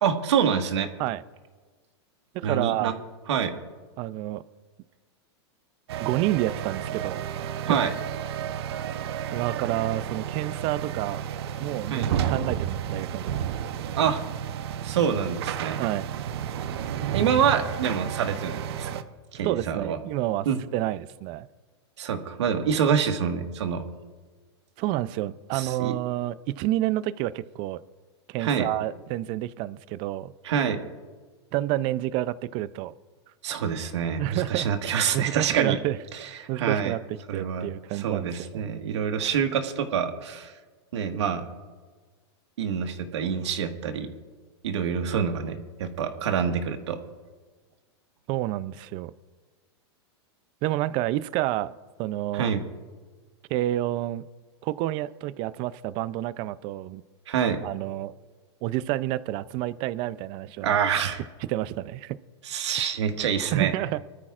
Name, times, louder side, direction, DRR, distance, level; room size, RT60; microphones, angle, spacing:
voice 1, 0.0-0.9 2.4-2.9 3.3-3.5 7.7-7.9 11.9-12.1 13.9-14.2 14.8-15.8 17.1-18.9 19.3-20.0 20.4-20.6 22.0-23.8 25.5-25.9 28.4-28.7 30.4-30.8 33.4-35.8 36.1-36.9 37.3-40.5 40.9-41.5 42.6-44.1 44.6-47.0 52.3-52.6 57.3-57.6 60.6-61.2 62.4-63.7, right 7 dB, 80° right, 5 dB, 1.6 m, -26 dB
voice 2, 2.3-3.0 4.0-4.4 6.0-7.3 7.7-7.8 9.3-11.2 11.6-13.3 15.7-16.1 19.4-20.5 20.7-21.5 24.8-27.8 28.3-30.3 31.5-32.9 34.2-34.7 35.1-36.0 36.5-37.0 37.3-38.7 48.3-49.1 50.6-51.7 52.0-52.5 53.5-54.2 54.6-57.0 57.6-58.1 58.6-60.8 61.5-62.2 63.5-64.0, right 15 dB, 35° right, 17 dB, 0.5 m, -29 dB
sound 1, 5.9-19.0, right 9 dB, 65° right, 0.9 m, -32 dB
24.5 x 13.0 x 2.5 m, 1.4 s
supercardioid pair, 150°, 14 cm